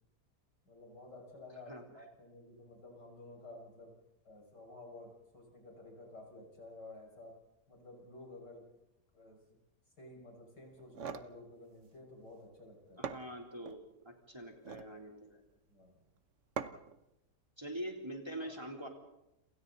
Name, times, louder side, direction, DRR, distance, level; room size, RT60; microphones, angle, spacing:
voice 1, 0.7-3.9 4.2-7.3 7.7-8.6 9.1-9.6 10.0-13.0 15.7-16.0 18.4-18.6, left 2 dB, 80° left, 1 dB, 6.8 m, -52 dB
sound 1, 10.7-11.3 12.6-12.7 13.0-13.8 14.5-14.9 16.6-17.0, right 6 dB, 50° right, 1.2 m, -42 dB
voice 2, 13.0-13.8 14.0-15.4 17.6-18.9, right 1 dB, 15° right, 1 dB, 3.5 m, -44 dB
30.0 x 27.5 x 4.1 m, 0.87 s
omnidirectional pair, 1.8 m